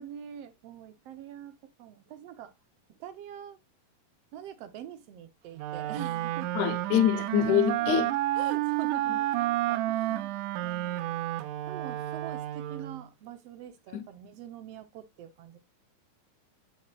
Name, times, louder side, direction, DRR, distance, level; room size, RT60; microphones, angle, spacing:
voice 1, 0.0-2.5 2.9-3.6 4.3-6.5 7.8-7.9 8.4-11.3 11.7-15.6, right 10 dB, 70° right, 1.6 m, -44 dB
Wind instrument woodwind instrument, 5.6-13.1, right 15 dB, 90° right, 2.1 m, -30 dB
voice 2, 6.5-8.1 13.9-14.0, left 10 dB, 80° left, 2.1 m, -25 dB
7.7 x 7.4 x 2.3 m
omnidirectional pair, 3.4 m